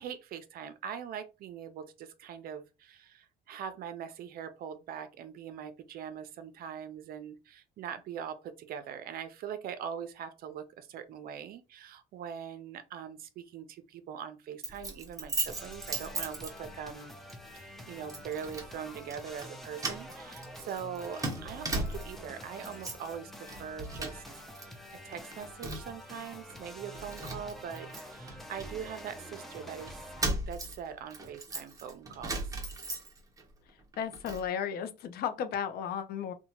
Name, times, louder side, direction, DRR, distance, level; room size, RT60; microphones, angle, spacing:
voice 1, 0.0-17.1 17.5-24.2 24.6-30.0 30.5-32.4, right 8 dB, 60° right, 0.5 m, -42 dB
Keys jangling, 14.6-16.9 17.3-17.5 18.1-18.7 19.0-19.5 19.8-22.3 22.6-23.1 23.4-24.6 24.9-26.0 26.5-26.6 26.9-29.3 29.9-33.4 33.8-34.5, right 2 dB, 20° right, 0.8 m, -37 dB
sound 1, 15.5-30.2, left 1 dB, ahead, 0.5 m, -47 dB
voice 2, 34.0-36.3, left 8 dB, 65° left, 0.4 m, -34 dB
2.7 x 2.1 x 2.8 m
cardioid pair, 110°, 17 cm